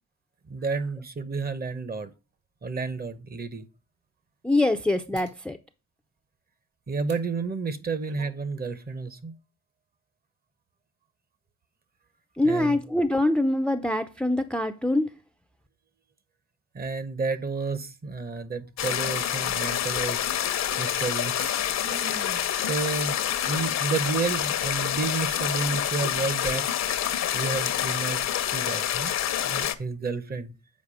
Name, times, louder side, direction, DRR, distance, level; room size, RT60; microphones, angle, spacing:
voice 1, 0.5-2.1 2.6-3.6 6.9-9.3 12.4-12.8 16.7-20.3 20.8-21.5 21.8-23.2 23.4-26.7 27.3-29.1 29.4-30.5, right 4 dB, 30° right, 0.9 m, -31 dB
sound 1, 2.3-2.4 3.0-3.2 5.1-5.4 7.0-7.2 7.8-8.4 8.8-8.9, right 5 dB, 55° right, 2.1 m, -50 dB
voice 2, 4.4-5.6 12.4-15.1, left 1 dB, 5° left, 0.5 m, -24 dB
sound 2, 18.8-29.8, left 10 dB, 60° left, 0.8 m, -27 dB
7.4 x 4.7 x 4.8 m
cardioid pair, 90°, 30 cm